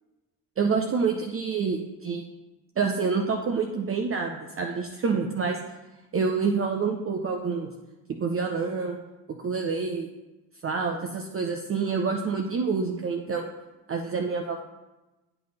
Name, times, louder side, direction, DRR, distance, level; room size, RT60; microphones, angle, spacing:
voice 1, 0.6-2.2 2.8-5.6 6.1-7.7 8.2-9.0 9.4-10.1 10.6-13.5 13.9-14.6, right 5 dB, 25° right, 2 dB, 0.6 m, -27 dB
9.2 x 3.4 x 4.1 m, 1.1 s
hypercardioid pair, 50°, 50 cm